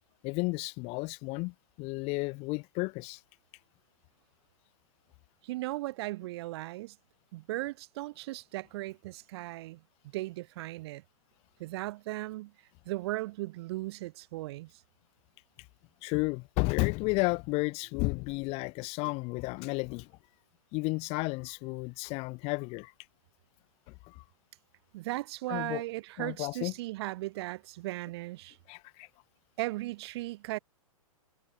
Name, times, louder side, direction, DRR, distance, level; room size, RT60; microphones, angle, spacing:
voice 1, 0.2-3.2 16.0-20.1 20.7-22.9 23.9-24.2 25.5-25.8 26.2-26.7 28.7-29.1, left 27 dB, 35° left, 2.9 m, -32 dB
voice 2, 5.4-7.0 7.3-9.8 10.1-11.0 11.6-12.5 12.9-14.7 24.9-28.6 29.6-30.6, right 18 dB, 45° right, 3.7 m, -37 dB
figure-of-eight pair, 120°, 18 cm